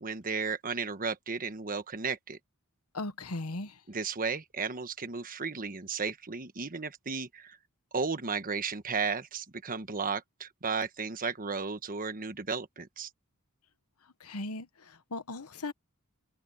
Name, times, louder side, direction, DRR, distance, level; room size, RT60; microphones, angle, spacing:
voice 1, 0.0-2.4 3.9-7.6 7.9-13.1, right 5 dB, 40° right, 1.3 m, -34 dB
voice 2, 2.9-3.8 14.0-15.7, left 2 dB, 80° left, 1.3 m, -38 dB
head